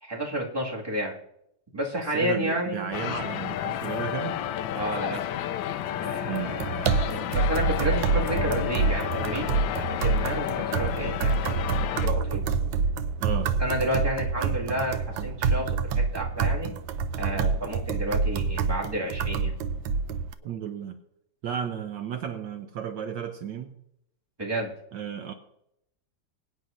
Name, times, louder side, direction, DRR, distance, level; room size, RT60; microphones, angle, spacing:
voice 1, 0.0-1.2 1.7-2.9 4.7-5.3 6.0-9.5 9.8-11.7 12.0-12.5 13.6-16.7 17.2-19.5 24.4-24.7, right 1 dB, 10° right, -3 dB, 1.9 m, -31 dB
voice 2, 2.1-4.4 6.3-6.6 13.2-13.5 20.4-21.0 21.4-23.8 24.9-25.3, right 8 dB, 70° right, 7 dB, 1.3 m, -33 dB
sound 1, 2.9-12.1, left 11 dB, 80° left, 1.3 m, -31 dB
sound 2, 6.3-20.3, right 4 dB, 90° right, 1.4 m, -27 dB
sound 3, 11.3-18.3, equal, 40° right, 4.6 m, -47 dB
22.0 x 9.3 x 2.6 m, 0.78 s
omnidirectional pair, 2.1 m